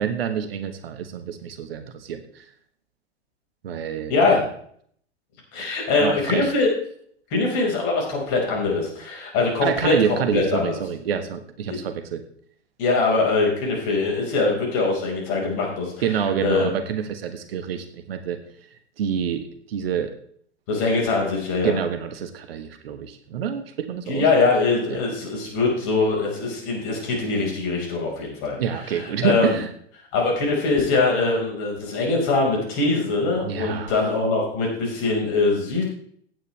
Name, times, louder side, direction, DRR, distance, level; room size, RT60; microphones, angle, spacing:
voice 1, 0.0-2.4 3.6-4.5 5.9-6.5 9.6-12.2 16.0-18.4 19.0-20.1 21.6-24.3 24.9-25.0 28.6-29.7 33.4-33.9, right 8 dB, 60° right, 8 dB, 1.4 m, -27 dB
voice 2, 5.5-6.7 7.3-10.8 11.7-11.8 12.8-16.7 20.7-21.8 24.1-29.6 30.1-35.8, left 3 dB, 45° left, 0 dB, 4.8 m, -22 dB
15.5 x 9.5 x 3.3 m, 0.62 s
figure-of-eight pair, 95°, 34 cm